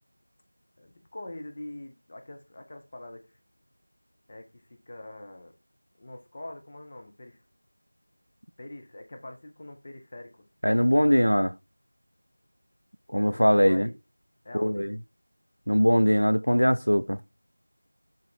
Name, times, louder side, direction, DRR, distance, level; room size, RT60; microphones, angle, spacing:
voice 1, 0.8-3.4 4.3-5.5 6.0-7.4 8.6-10.5 13.3-13.9 14.4-14.9, left 1 dB, 10° left, 0.7 m, -43 dB
voice 2, 10.6-11.5 13.1-13.9 14.5-15.0 15.7-17.2, equal, 90° left, 0.9 m, -21 dB
10.5 x 4.0 x 4.6 m
figure-of-eight pair, 180°, 0 cm